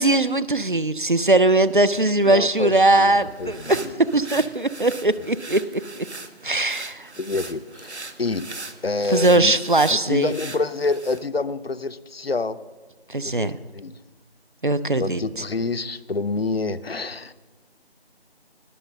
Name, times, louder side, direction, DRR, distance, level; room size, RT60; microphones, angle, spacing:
voice 1, 0.0-6.1 6.4-7.1 9.1-10.3 13.1-13.6 14.6-15.2, right 2 dB, 50° right, 16 dB, 0.5 m, -20 dB
voice 2, 2.2-4.0 7.2-8.5 8.8-9.5 9.9-12.6 13.2-13.9 15.0-17.3, left 3 dB, 65° left, 14 dB, 0.7 m, -27 dB
sound 1, 3.0-11.3, right 3 dB, 85° right, 1.2 m, -40 dB
18.5 x 6.8 x 6.4 m, 1.3 s
figure-of-eight pair, 175°, 33 cm